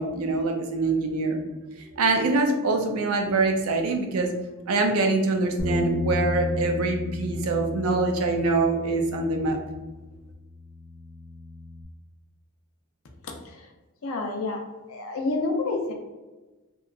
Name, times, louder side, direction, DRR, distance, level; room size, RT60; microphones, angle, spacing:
voice 1, 0.0-1.4 1.8-4.3 4.7-9.6, right 3 dB, 80° right, 3 dB, 0.4 m, -24 dB
Bass guitar, 5.6-11.8, left 2 dB, 5° right, 0.4 m, -33 dB
voice 2, 14.0-14.6 14.9-15.9, left 3 dB, 70° left, 3 dB, 0.5 m, -28 dB
2.8 x 2.3 x 2.3 m, 1.2 s
head